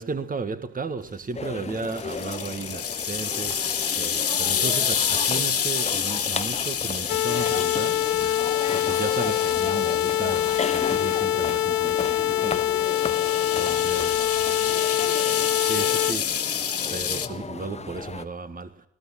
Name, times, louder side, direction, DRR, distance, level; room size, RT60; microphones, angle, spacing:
voice 1, 0.0-3.7 4.0-8.0 8.7-12.7 13.6-14.3 15.6-16.3 16.9-18.7, right 4 dB, 30° right, 1.6 m, -34 dB
sound 1, 1.3-18.2, left 4 dB, 20° left, 0.8 m, -35 dB
sound 2, 1.8-11.4 12.5-17.3, left 8 dB, 50° left, 2.3 m, -29 dB
sound 3, 7.1-16.1, left 12 dB, 65° left, 0.9 m, -24 dB
voice 2, 13.2-16.1, right 5 dB, 80° right, 3.0 m, -48 dB
20.0 x 18.0 x 7.4 m
cardioid pair, 90°, 30 cm